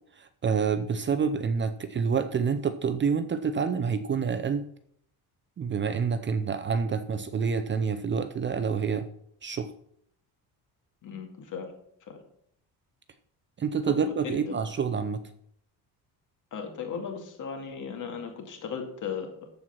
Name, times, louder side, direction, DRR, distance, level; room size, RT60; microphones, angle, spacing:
voice 1, 0.2-4.7 5.6-9.1 9.4-9.7 13.6-15.2, right 6 dB, 30° right, 11 dB, 0.6 m, -28 dB
voice 2, 11.0-11.7 12.1-12.2 13.8-13.9 14.2-14.6 16.5-19.5, left 6 dB, 50° left, 3 dB, 2.3 m, -36 dB
13.5 x 4.6 x 5.9 m, 0.68 s
cardioid pair, 140°, 38 cm